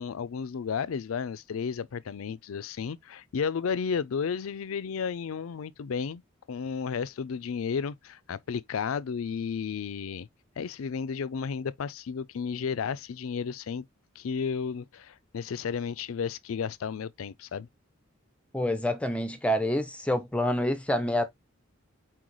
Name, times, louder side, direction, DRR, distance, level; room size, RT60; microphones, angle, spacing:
voice 1, 0.0-6.2 6.5-10.3 10.6-13.8 14.2-17.7, left 6 dB, 80° left, 0.4 m, -33 dB
voice 2, 18.5-21.2, left 1 dB, 5° left, 0.5 m, -27 dB
4.3 x 3.9 x 3.0 m
head